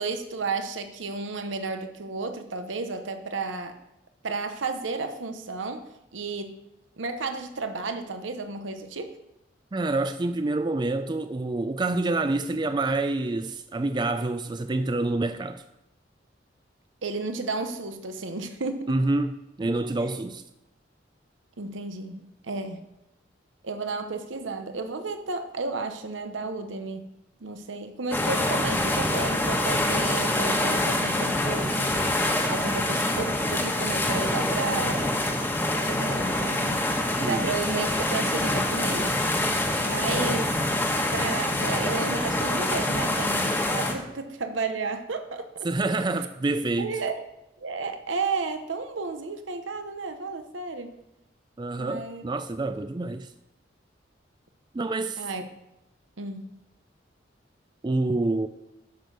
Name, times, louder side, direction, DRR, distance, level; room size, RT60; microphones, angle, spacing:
voice 1, 0.0-3.8 4.2-6.5 7.0-9.2 17.0-19.0 21.6-22.8 23.6-27.1 27.4-32.0 32.5-35.2 35.8-36.8 37.2-39.2 39.8-40.7 41.1-45.7 46.8-47.2 47.6-51.0 51.8-52.2 55.2-55.4 56.2-56.5, right 4 dB, 90° right, 0.9 m, -32 dB
voice 2, 9.7-15.6 18.9-19.3 19.6-20.4 37.2-37.5 45.6-47.0 51.6-53.3 54.7-55.2 57.8-58.5, right 2 dB, 25° right, 0.4 m, -27 dB
sound 1, 28.1-43.9, left 1 dB, 10° left, 1.2 m, -25 dB
10.0 x 6.5 x 6.7 m
head